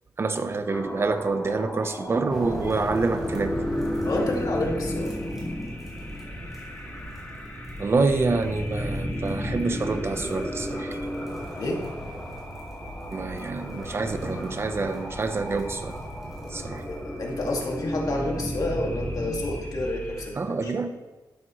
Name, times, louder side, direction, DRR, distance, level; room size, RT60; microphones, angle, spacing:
voice 1, 0.2-3.5 7.8-11.0 13.1-16.0 16.5-16.9 20.4-20.9, right 3 dB, 35° right, 8 dB, 0.8 m, -27 dB
sound 1, 0.7-20.3, equal, 20° left, 2.2 m, -34 dB
sound 2, 2.3-17.6, equal, 5° right, 3.9 m, -39 dB
voice 2, 4.0-5.1 11.6-11.8 16.9-20.7, left 2 dB, 60° left, 0 dB, 2.1 m, -29 dB
12.5 x 9.9 x 3.1 m, 1.2 s
wide cardioid pair, 135°, 7 cm